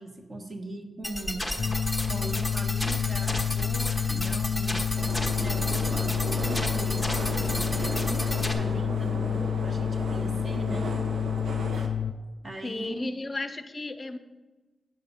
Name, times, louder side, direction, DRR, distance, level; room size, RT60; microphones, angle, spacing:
voice 1, 0.0-1.4 2.1-4.9 5.4-10.9 12.4-13.1, right 1 dB, 25° right, 4 dB, 1.2 m, -39 dB
sound 1, 1.0-8.5, left 1 dB, ahead, 1.0 m, -32 dB
sound 2, 1.6-12.1, left 8 dB, 60° left, 0.3 m, -29 dB
sound 3, 5.0-11.9, right 2 dB, 75° right, 1.3 m, -36 dB
voice 2, 12.6-14.2, left 2 dB, 25° left, 9 dB, 0.6 m, -34 dB
9.2 x 6.6 x 5.5 m, 1.2 s
wide cardioid pair, 155°, 0 cm